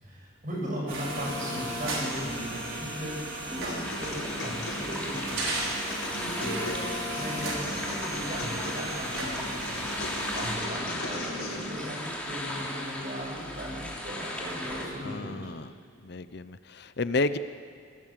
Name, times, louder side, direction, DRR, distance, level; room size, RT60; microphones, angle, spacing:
voice 1, 0.0-5.4 6.2-9.9 10.3-15.5, equal, 40° right, -3 dB, 7.5 m, -37 dB
sound 1, 0.9-10.6, right 1 dB, 75° right, 5.6 m, -35 dB
sound 2, 3.7-11.7, left 2 dB, 85° left, 4.3 m, -39 dB
sound 3, 3.8-14.9, left 1 dB, 5° left, 3.0 m, -37 dB
voice 2, 15.0-15.7 16.0-17.4, left 3 dB, 50° left, 13 dB, 0.7 m, -31 dB
26.5 x 18.5 x 7.6 m, 2.1 s
head